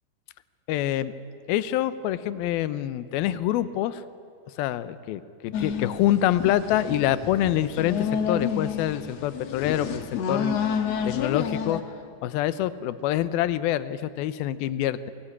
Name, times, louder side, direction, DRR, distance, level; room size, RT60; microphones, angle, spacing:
voice 1, 0.7-1.1 1.5-4.0 4.6-10.6 11.0-11.8 12.2-15.1, left 12 dB, 80° left, 15 dB, 2.6 m, -26 dB
sound 1, 5.5-11.8, left 7 dB, 55° left, 2.1 m, -29 dB
22.5 x 22.0 x 10.0 m, 2.5 s
omnidirectional pair, 4.5 m